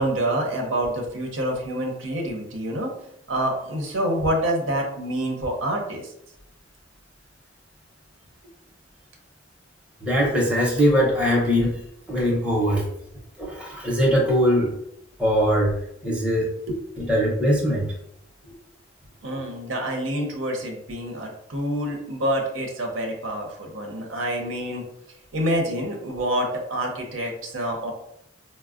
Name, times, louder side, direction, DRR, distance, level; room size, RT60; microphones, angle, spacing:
voice 1, 0.0-2.9 3.3-6.1 19.2-24.8 25.3-27.9, right 1 dB, 85° right, 1 dB, 0.8 m, -27 dB
voice 2, 10.0-11.8 12.1-12.9 13.4-14.7 15.2-15.7 16.0-16.5 17.0-17.9, equal, 5° right, -4 dB, 0.6 m, -21 dB
4.3 x 2.1 x 2.4 m, 0.77 s
head